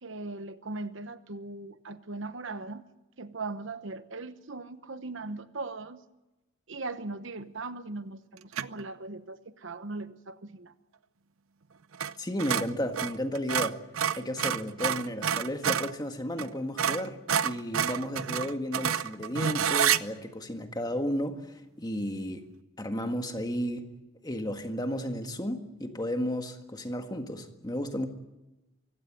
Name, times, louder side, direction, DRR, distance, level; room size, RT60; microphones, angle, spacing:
voice 1, 0.0-2.8 3.2-6.0 6.7-10.7, right 3 dB, 60° right, 12 dB, 1.1 m, -39 dB
sound 1, 8.5-8.8 11.9-12.1 12.4-15.9 16.4-16.5 16.8-20.0, right 8 dB, 90° right, 0.7 m, -28 dB
voice 2, 12.2-13.9 14.1-22.4 22.8-23.9 24.2-28.1, equal, 20° left, 6 dB, 1.7 m, -33 dB
24.0 x 16.0 x 9.2 m, 1.0 s
head